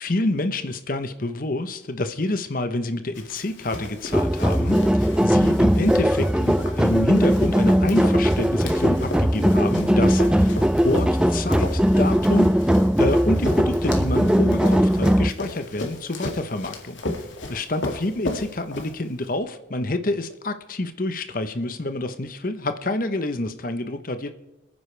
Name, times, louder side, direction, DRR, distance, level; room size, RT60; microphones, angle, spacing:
voice 1, 0.0-12.6 13.0-24.3, left 2 dB, 45° left, 10 dB, 0.9 m, -27 dB
Run, 3.1-19.3, left 2 dB, 85° left, 2.2 m, -35 dB
sound 1, 4.1-15.3, equal, 5° right, 0.4 m, -19 dB
26.0 x 9.6 x 3.4 m, 1.0 s
head